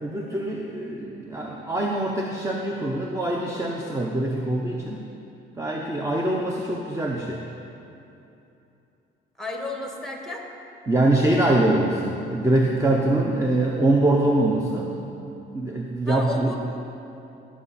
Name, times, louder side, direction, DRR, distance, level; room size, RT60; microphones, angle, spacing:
voice 1, 0.0-5.0 5.6-7.4 10.9-14.9 15.5-16.5, right 1 dB, 15° right, -1 dB, 0.8 m, -23 dB
voice 2, 9.4-10.5 16.0-16.6, left 2 dB, ahead, 1 dB, 1.7 m, -32 dB
16.0 x 6.1 x 4.2 m, 2.8 s
cardioid pair, 90°, 20 cm